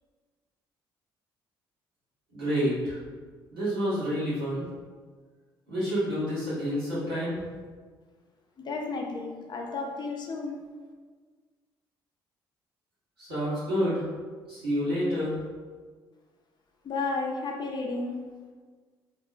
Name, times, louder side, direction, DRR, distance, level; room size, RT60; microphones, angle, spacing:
voice 1, 2.3-3.0 3.5-4.6 5.7-7.4 13.2-14.1 14.5-15.4, equal, 85° right, -11 dB, 1.1 m, -28 dB
voice 2, 8.6-10.6 16.8-18.2, left 3 dB, 35° left, 1 dB, 0.5 m, -32 dB
2.9 x 2.1 x 2.5 m, 1.5 s
figure-of-eight pair, 45°, 12 cm